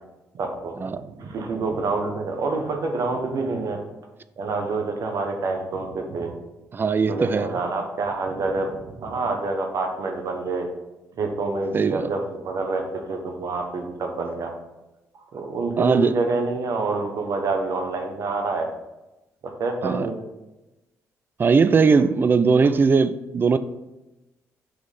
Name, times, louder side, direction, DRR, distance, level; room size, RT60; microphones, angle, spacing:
voice 1, 0.3-0.9 1.2-3.8 4.4-6.3 7.1-10.7 11.1-14.5 15.1-18.7 19.6-20.2, right 3 dB, 60° right, 3 dB, 1.1 m, -27 dB
voice 2, 6.7-7.5 11.7-12.1 15.8-16.1 19.8-20.1 21.4-23.6, right 5 dB, 35° right, 13 dB, 0.4 m, -19 dB
6.2 x 3.1 x 5.3 m, 1.0 s
supercardioid pair, 70°, 7 cm